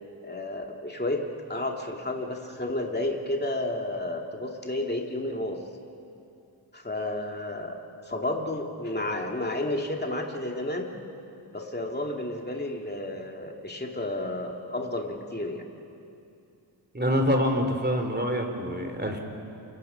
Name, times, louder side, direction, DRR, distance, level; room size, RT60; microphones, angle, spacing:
voice 1, 0.2-1.2 1.5-5.6 6.7-10.9 11.5-15.6, left 1 dB, 20° left, 1 dB, 2.5 m, -31 dB
voice 2, 16.9-19.2, equal, 20° right, 4 dB, 3.7 m, -26 dB
28.5 x 25.5 x 5.8 m, 2.6 s
wide cardioid pair, 45°, 47 cm